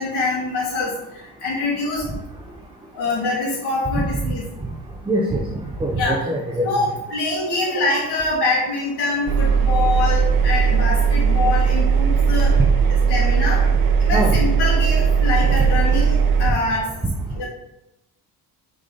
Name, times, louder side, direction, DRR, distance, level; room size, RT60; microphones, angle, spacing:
voice 1, 0.0-2.1 2.9-4.4 6.0-6.3 6.6-12.6 13.1-13.7 14.0-16.9 17.4-17.5, left 3 dB, 80° left, -7 dB, 1.9 m, -24 dB
voice 2, 5.1-5.4 5.8-6.9 14.1-14.4, right 1 dB, 15° right, -1 dB, 0.6 m, -23 dB
Engine, 9.3-16.5, right 6 dB, 60° right, 0.8 m, -18 dB
6.3 x 4.1 x 3.8 m, 0.87 s
cardioid pair, 160°, 39 cm